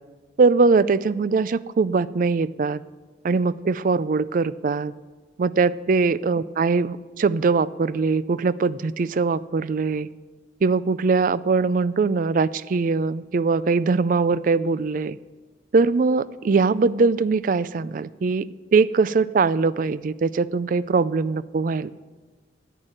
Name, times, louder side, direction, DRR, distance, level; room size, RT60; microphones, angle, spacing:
voice 1, 0.4-2.8 3.2-4.9 5.4-10.1 10.6-15.2 15.7-21.9, right 4 dB, 50° right, 17 dB, 0.4 m, -21 dB
10.5 x 9.0 x 8.9 m, 1.3 s
head